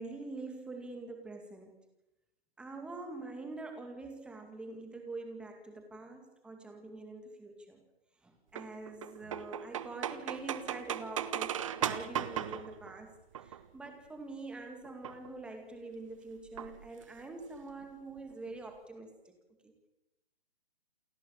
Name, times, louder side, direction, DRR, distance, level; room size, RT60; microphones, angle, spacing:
voice 1, 0.0-1.8 2.6-7.8 8.2-13.1 13.4-19.3 19.6-19.9, right 2 dB, 5° right, 4 dB, 2.1 m, -45 dB
sound 1, 8.6-13.9 14.8-15.3 16.5-17.2 17.5-17.6 17.8-17.9 18.2-18.6, right 9 dB, 30° right, 0.9 m, -38 dB
28.5 x 11.0 x 8.9 m, 0.96 s
hypercardioid pair, 165°, 31 cm